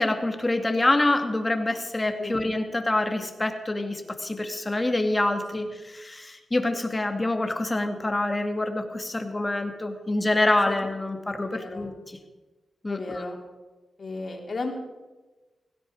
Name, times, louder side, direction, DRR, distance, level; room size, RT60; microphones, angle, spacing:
voice 1, 0.0-5.7 5.9-12.2 12.8-13.2, left 2 dB, 25° left, 6 dB, 2.4 m, -26 dB
voice 2, 11.4-12.0 12.9-13.4 14.0-14.7, left 3 dB, 55° left, 1 dB, 3.7 m, -34 dB
17.0 x 16.5 x 4.9 m, 1.2 s
cardioid pair, 60°, 0 cm